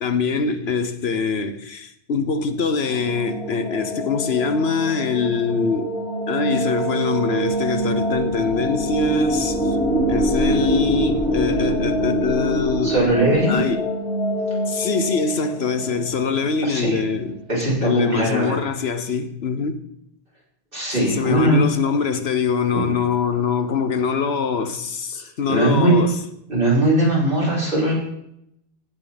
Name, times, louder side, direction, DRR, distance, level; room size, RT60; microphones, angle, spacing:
voice 1, 0.0-5.9 6.3-9.8 10.1-13.0 13.5-13.9 14.7-17.4 17.8-19.8 21.0-26.1, left 5 dB, 70° left, 1.2 m, -23 dB
sound 1, 2.5-17.4, right 1 dB, 35° right, 5.4 m, -27 dB
sound 2, 7.8-13.8, equal, 10° left, 1.3 m, -24 dB
voice 2, 12.8-13.6 16.6-17.0 17.5-18.6 20.7-21.7 22.7-22.9 25.2-26.1 26.5-27.9, right 1 dB, 55° right, 5.7 m, -20 dB
17.0 x 7.9 x 4.0 m
omnidirectional pair, 1.1 m